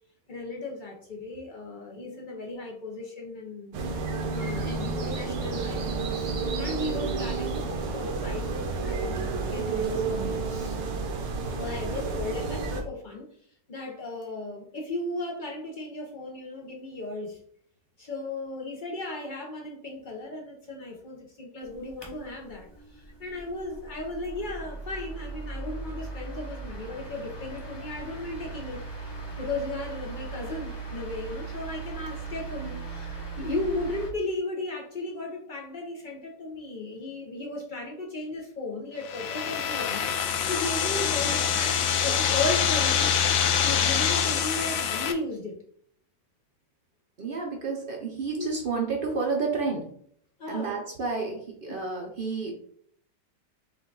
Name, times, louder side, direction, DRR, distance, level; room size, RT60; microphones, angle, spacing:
voice 1, 0.3-3.9 4.3-10.8 11.6-13.3 13.7-17.4 18.0-28.8 29.4-45.6 48.4-48.5 50.4-50.7 51.7-51.8, left 2 dB, 90° left, 0 dB, 0.4 m, -36 dB
sound 1, 3.7-12.8, right 4 dB, 75° right, 1.4 m, -30 dB
voice 2, 4.3-4.7 12.2-12.3 47.2-49.9 50.5-52.5, right 4 dB, 60° right, 0 dB, 0.5 m, -31 dB
sound 2, 21.6-34.1, right 4 dB, 25° left, 0.6 m, -39 dB
sound 3, 39.0-45.1, left 8 dB, 70° left, 0.8 m, -25 dB
5.6 x 2.3 x 3.8 m, 0.62 s
omnidirectional pair, 1.9 m